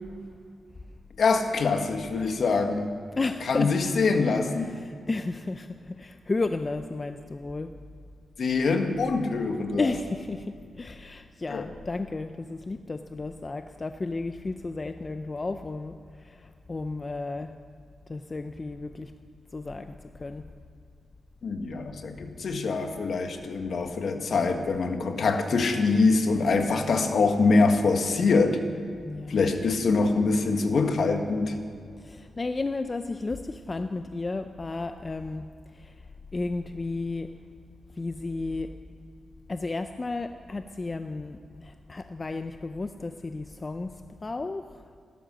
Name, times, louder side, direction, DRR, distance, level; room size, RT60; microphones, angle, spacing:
voice 1, 1.2-2.9 3.4-4.7 8.4-9.9 11.5-11.7 21.4-28.6 29.3-31.5, left 4 dB, 60° left, 5 dB, 1.7 m, -24 dB
voice 2, 3.1-3.7 4.7-7.7 9.8-17.5 18.1-19.1 19.5-20.4 29.0-29.4 32.0-35.9 36.3-37.3 38.0-38.7 39.5-45.0, left 3 dB, 30° left, 8 dB, 0.6 m, -33 dB
17.0 x 13.0 x 6.4 m, 2.3 s
cardioid pair, 95°, 0 cm